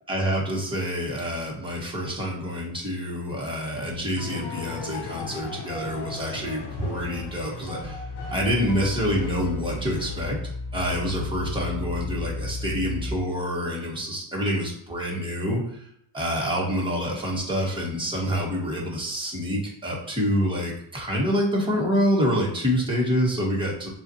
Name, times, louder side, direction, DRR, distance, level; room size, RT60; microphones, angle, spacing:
voice 1, 0.1-8.0 8.3-10.4 10.7-15.8 16.1-23.9, equal, 10° right, -3 dB, 1.3 m, -27 dB
sound 1, 4.2-10.6, left 3 dB, 55° left, 0.9 m, -37 dB
sound 2, 7.8-13.1, left 3 dB, 35° right, 0.8 m, -33 dB
7.0 x 2.5 x 2.8 m, 0.68 s
cardioid pair, 115°, 46 cm